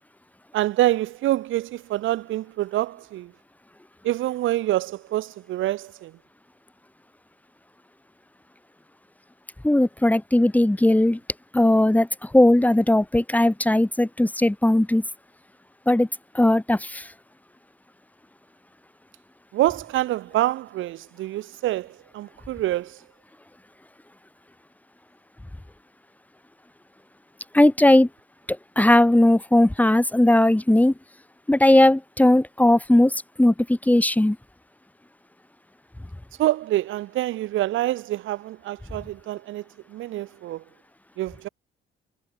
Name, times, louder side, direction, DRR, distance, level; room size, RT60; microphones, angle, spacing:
voice 1, 0.5-3.3 4.0-6.1 19.5-21.9 22.1-22.9 36.4-39.6 39.9-40.6 41.2-41.5, right 15 dB, 85° right, 1.4 m, -26 dB
voice 2, 9.6-11.2 11.5-15.0 15.9-16.1 16.3-17.1 27.5-28.1 28.5-30.9 31.5-34.4, left 1 dB, 10° left, 2.9 m, -18 dB
cardioid pair, 90°, 20 cm